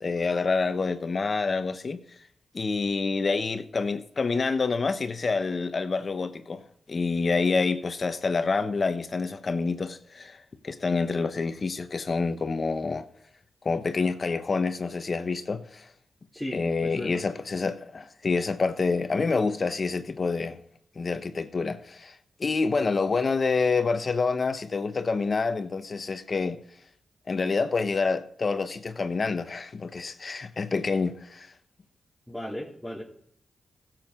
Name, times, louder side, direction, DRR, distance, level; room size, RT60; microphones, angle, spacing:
voice 1, 0.0-2.0 2.5-6.6 6.9-13.1 13.6-15.9 16.5-20.6 20.9-22.1 22.4-26.6 27.3-31.5, left 4 dB, 50° left, 1.1 m, -27 dB
voice 2, 16.3-17.2 32.3-33.0, left 1 dB, ahead, 3.6 m, -36 dB
16.0 x 7.7 x 3.9 m
supercardioid pair, 45°, 0 cm